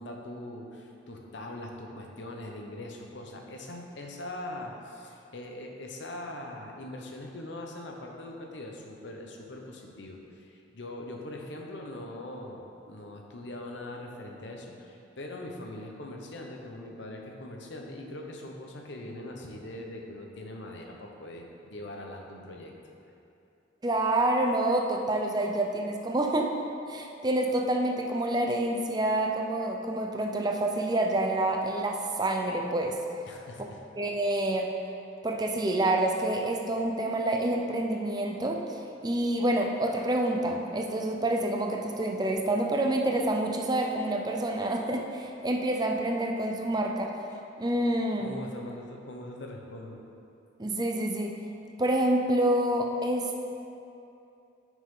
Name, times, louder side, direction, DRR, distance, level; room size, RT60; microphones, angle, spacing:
voice 1, 0.0-22.7 33.3-33.8 48.2-50.0, left 1 dB, 65° left, 1 dB, 0.9 m, -41 dB
voice 2, 23.8-26.5 26.9-33.0 34.0-34.7 35.2-38.6 39.0-47.1 47.6-48.3 50.6-51.3 51.8-53.4, right 1 dB, 20° right, 2 dB, 0.5 m, -27 dB
9.3 x 6.2 x 3.8 m, 2.7 s
head